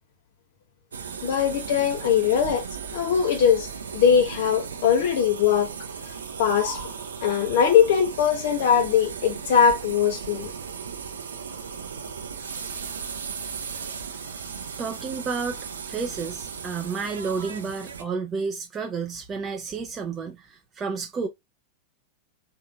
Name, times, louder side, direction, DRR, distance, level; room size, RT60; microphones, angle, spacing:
helicopter landing exit, 0.9-18.0, right 6 dB, 70° right, 0.6 m, -36 dB
voice 1, 1.2-2.7 2.9-5.7 6.4-6.9 7.2-10.5, left 8 dB, 55° left, 0.7 m, -21 dB
voice 2, 14.8-15.6 15.9-21.3, right 5 dB, 20° right, 0.5 m, -31 dB
3.7 x 2.5 x 2.4 m
figure-of-eight pair, 90°, 0 cm